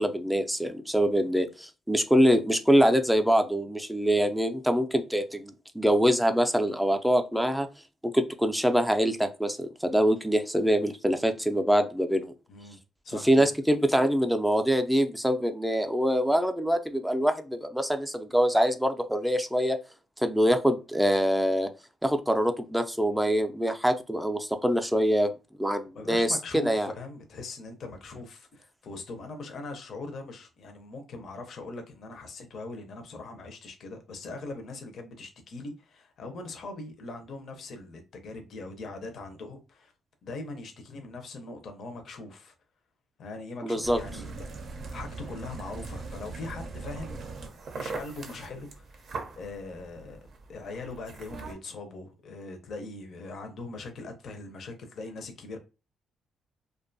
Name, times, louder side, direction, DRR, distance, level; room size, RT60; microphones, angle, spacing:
voice 1, 0.0-7.7 8.1-12.3 13.2-19.8 20.2-21.7 22.0-25.3 25.6-26.9 43.6-44.0, equal, ahead, 0.4 m, -24 dB
voice 2, 13.0-13.5 25.9-39.9 40.2-42.5 43.2-44.4 44.7-47.3 47.7-55.6, left 3 dB, 60° left, 0.5 m, -41 dB
sound 1, 43.8-51.5, right 4 dB, 60° right, 0.5 m, -40 dB
2.5 x 2.2 x 2.5 m
cardioid pair, 90°, 0 cm